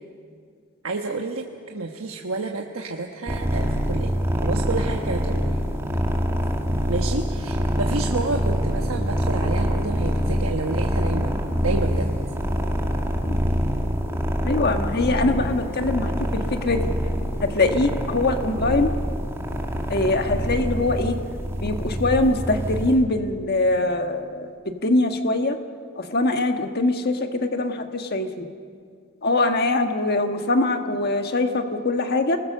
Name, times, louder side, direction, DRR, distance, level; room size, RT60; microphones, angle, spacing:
voice 1, 0.8-4.1 4.4-5.6 6.9-11.3 11.6-12.1, right 3 dB, 75° right, 2 dB, 1.3 m, -29 dB
sound 1, 3.3-23.0, equal, 10° right, 2.0 m, -25 dB
voice 2, 14.4-16.9 17.4-18.9 19.9-21.2 21.6-25.6 26.0-28.5 29.2-32.4, left 2 dB, 50° left, 6 dB, 1.4 m, -23 dB
29.5 x 20.5 x 6.7 m, 2.2 s
head